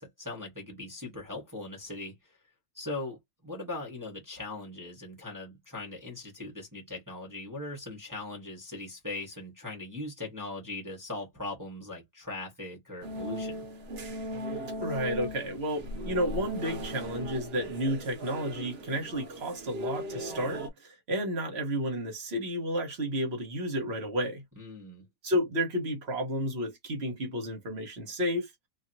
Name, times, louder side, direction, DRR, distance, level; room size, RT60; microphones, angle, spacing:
voice 1, 0.0-2.4 2.7-13.7 24.6-25.0, left 2 dB, 15° right, 0.8 m, -40 dB
sound 1, 13.0-20.7, equal, 55° right, 0.7 m, -38 dB
voice 2, 14.8-24.4 25.2-28.5, equal, 40° right, 1.1 m, -31 dB
3.0 x 2.8 x 2.6 m
omnidirectional pair, 2.1 m